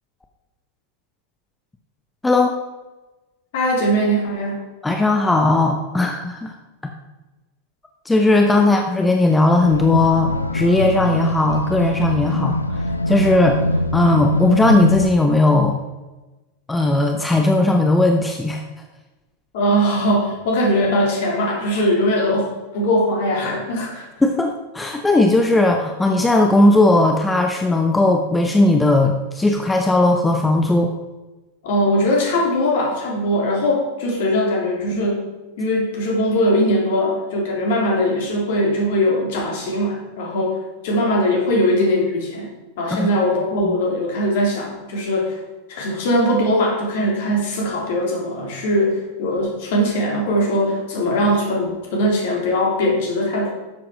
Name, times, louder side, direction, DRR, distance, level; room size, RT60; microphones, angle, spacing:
voice 1, 2.2-2.6 4.8-6.5 6.8-6.9 8.1-12.8 13.1-13.6 13.9-15.8 16.7-18.6 24.2-30.9 42.9-43.1 43.6-43.7, left 2 dB, 10° left, 3 dB, 0.9 m, -17 dB
voice 2, 3.5-4.7 8.5-8.6 19.5-24.1 31.6-35.3 35.6-45.4 45.7-53.5, equal, 55° left, -1 dB, 3.3 m, -20 dB
sound 1, 9.6-15.1, left 1 dB, 85° left, 0.6 m, -23 dB
11.5 x 7.6 x 5.0 m, 1.1 s
figure-of-eight pair, 90°, 0 cm